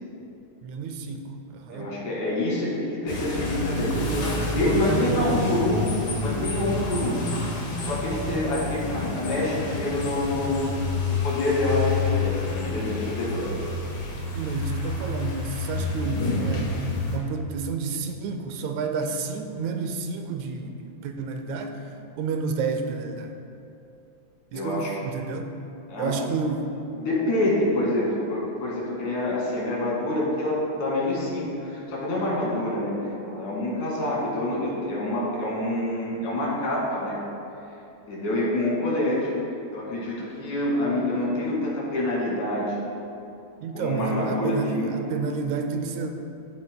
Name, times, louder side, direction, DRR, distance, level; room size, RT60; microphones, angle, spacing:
voice 1, 0.6-2.0 4.0-5.5 14.3-21.9 22.2-23.3 24.5-25.5 26.0-26.7 43.6-46.2, right 4 dB, 80° right, 6 dB, 1.8 m, -30 dB
voice 2, 1.7-4.2 4.6-5.9 6.2-7.2 7.8-10.6 11.1-12.4 12.7-13.6 24.5-24.9 25.9-26.1 27.0-33.0 33.3-37.2 38.1-39.3 39.7-42.8 43.7-44.9, left 1 dB, 75° left, -5 dB, 3.6 m, -26 dB
sound 1, 3.1-17.2, left 3 dB, 50° left, 1.8 m, -29 dB
14.5 x 8.6 x 2.2 m, 2.7 s
omnidirectional pair, 3.6 m